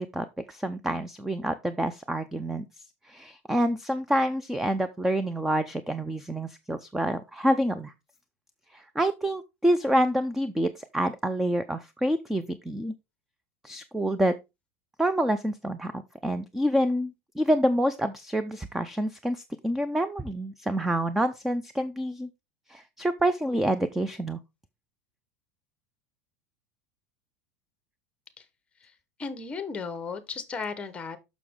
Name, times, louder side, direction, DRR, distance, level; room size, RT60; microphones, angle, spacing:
voice 1, 0.0-2.7 3.0-7.9 8.7-12.9 13.6-14.3 15.0-22.3 22.7-24.4, right 1 dB, 5° right, 0.4 m, -27 dB
voice 2, 29.2-31.2, left 5 dB, 15° left, 1.0 m, -35 dB
6.6 x 6.1 x 3.6 m
supercardioid pair, 155°, 8 cm